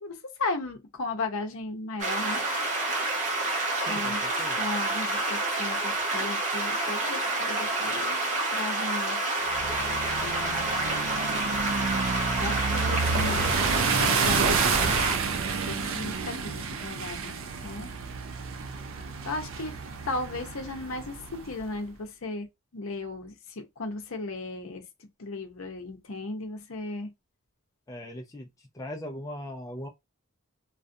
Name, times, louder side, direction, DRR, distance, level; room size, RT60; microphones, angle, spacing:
voice 1, 0.0-2.4 3.9-4.2 4.5-8.2 8.5-9.2 10.2-10.7 12.4-15.0 15.6-17.4 17.6-17.9 19.3-19.8 20.1-24.9 25.2-27.1, left 2 dB, 65° left, 0.7 m, -36 dB
sound 1, 2.0-15.2, right 2 dB, 35° right, 0.7 m, -28 dB
voice 2, 3.8-4.7 27.9-28.5 28.7-29.9, left 1 dB, 15° left, 0.3 m, -39 dB
sound 2, 9.5-21.7, right 5 dB, 65° right, 0.4 m, -30 dB
2.4 x 2.1 x 2.6 m
head